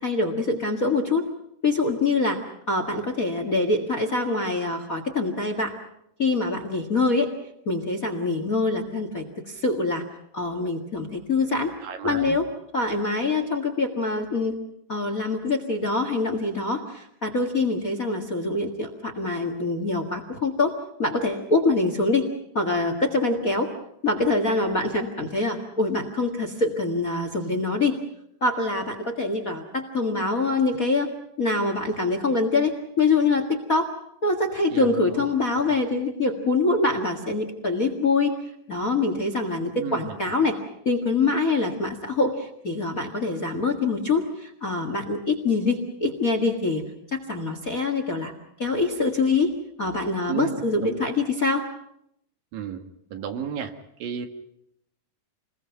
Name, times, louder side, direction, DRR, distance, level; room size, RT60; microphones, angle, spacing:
voice 1, 0.0-1.2 1.6-5.7 6.2-7.3 7.6-10.0 10.3-11.7 12.0-12.5 12.7-14.5 14.9-20.7 21.0-22.3 22.5-23.7 24.0-27.9 28.4-31.1 31.4-33.9 34.2-38.3 38.7-40.6 40.8-46.8 47.1-48.3 48.6-49.5 49.8-51.6, left 3 dB, 35° left, 6 dB, 1.6 m, -24 dB
voice 2, 11.8-12.4 34.7-35.3 39.7-40.2 50.3-51.1 52.5-52.8 53.1-53.7 54.0-54.3, right 7 dB, 80° right, 6 dB, 3.5 m, -33 dB
28.5 x 21.0 x 5.8 m, 0.76 s
omnidirectional pair, 4.0 m